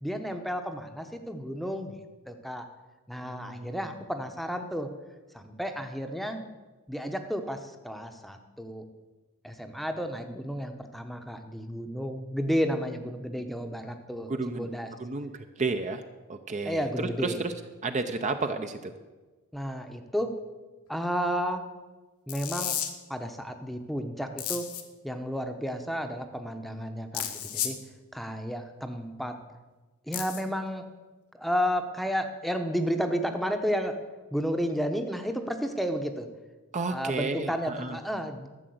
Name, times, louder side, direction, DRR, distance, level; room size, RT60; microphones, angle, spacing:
voice 1, 0.0-2.0 2.3-2.7 3.1-4.9 5.3-6.4 6.9-8.9 9.4-14.9 16.6-17.4 19.5-20.3 20.9-21.6 22.3-22.7 23.1-24.6 25.0-27.8 28.1-29.4 30.1-30.8 31.4-34.0 34.3-36.3 36.9-38.5, equal, ahead, 7 dB, 0.8 m, -32 dB
voice 2, 3.2-3.8 14.3-14.7 15.0-15.3 15.6-16.0 16.3-17.5 17.8-18.9 36.7-38.0, right 3 dB, 35° right, 7 dB, 0.6 m, -32 dB
sound 1, 22.3-22.9 24.4-24.8 27.1-27.8 30.1-30.4, left 11 dB, 75° left, 1.3 m, -32 dB
12.5 x 7.5 x 7.8 m, 1.2 s
head